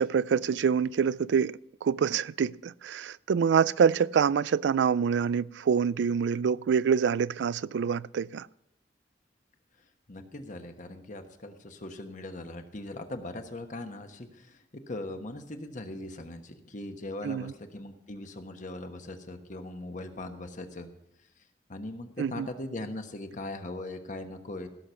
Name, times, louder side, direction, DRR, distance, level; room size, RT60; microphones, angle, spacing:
voice 1, 0.0-8.5 17.2-17.5 22.2-22.5, right 6 dB, 75° right, 0.3 m, -26 dB
voice 2, 10.1-20.9 21.7-24.7, left 2 dB, 45° left, 1.2 m, -40 dB
16.5 x 6.7 x 5.7 m
head